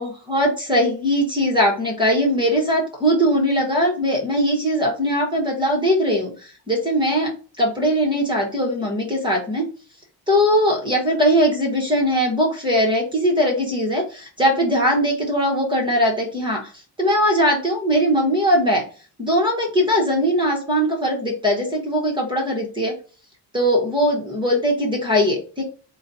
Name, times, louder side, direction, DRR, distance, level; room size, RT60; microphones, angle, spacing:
voice 1, 0.0-9.6 10.3-16.7 17.0-18.8 19.2-22.9 23.5-25.6, equal, 10° right, -2 dB, 0.9 m, -20 dB
4.0 x 2.2 x 4.0 m, 0.37 s
wide cardioid pair, 165°, 45 cm